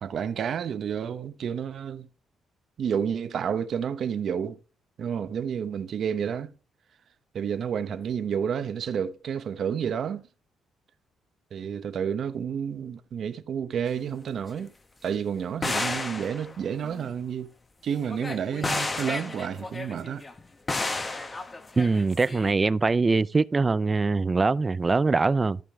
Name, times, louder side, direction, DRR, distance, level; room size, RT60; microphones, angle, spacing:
voice 1, 0.0-2.1 2.8-4.6 5.0-6.5 7.3-10.2 11.5-14.7 15.0-17.5 17.8-20.2, right 8 dB, 60° right, 1.0 m, -30 dB
sound 1, 13.9-14.0 14.5-14.6 15.6-17.1 18.1-20.4 20.7-22.5, left 3 dB, 25° left, 1.2 m, -32 dB
voice 2, 21.8-25.6, right 3 dB, 25° right, 0.5 m, -23 dB
14.5 x 5.3 x 3.7 m
cardioid pair, 90°, 0 cm